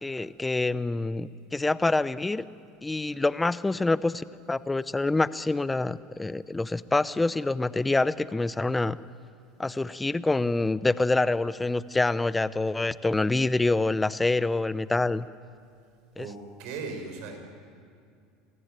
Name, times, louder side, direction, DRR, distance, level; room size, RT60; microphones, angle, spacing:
voice 1, 0.0-2.4 2.8-9.0 9.6-15.3 16.2-16.3, left 2 dB, 10° left, 16 dB, 0.7 m, -26 dB
voice 2, 16.2-17.4, right 4 dB, 70° right, 4 dB, 5.5 m, -37 dB
26.0 x 16.0 x 9.0 m, 2.3 s
supercardioid pair, 100°, 0 cm